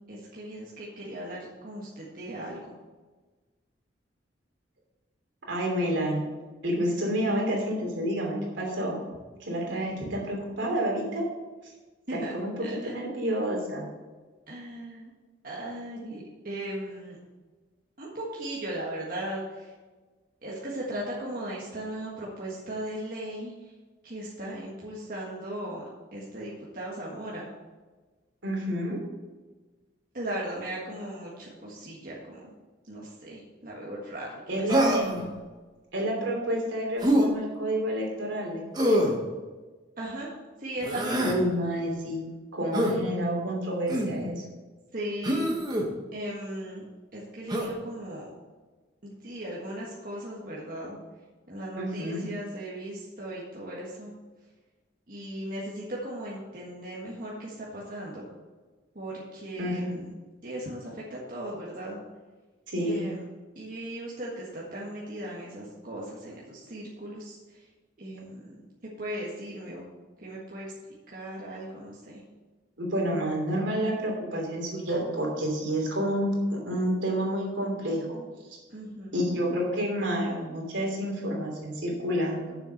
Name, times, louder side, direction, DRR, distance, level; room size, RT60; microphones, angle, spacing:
voice 1, 0.1-2.7 12.1-12.9 14.5-15.1 15.4-17.2 18.0-19.7 20.4-23.7 24.0-27.5 30.1-32.5 32.8-34.8 40.0-40.3 40.6-41.3 44.9-45.5 46.1-46.8 47.1-48.3 49.0-51.0 51.5-54.1 55.1-58.3 58.9-60.1 60.4-62.0 62.8-63.2 63.5-67.7 68.0-68.6 69.0-69.9 70.2-70.7 71.1-72.2 78.7-79.2, right 1 dB, 45° right, -5 dB, 1.6 m, -37 dB
voice 2, 5.5-6.2 6.6-9.0 9.4-11.2 11.6-11.7 12.1-13.9 28.4-29.0 34.5-35.3 35.9-38.6 38.9-39.0 41.2-42.2 42.5-44.4 51.8-52.3 59.6-59.9 62.7-63.1 72.8-78.2 79.1-82.6, equal, 80° right, -1 dB, 3.0 m, -29 dB
Human voice, 34.7-35.2 37.0-37.3 38.8-39.2 40.8-41.4 42.7-43.0 43.9-44.2 45.2-45.9 47.5-47.7, equal, 20° right, 1.3 m, -24 dB
7.2 x 7.0 x 6.4 m, 1.3 s
head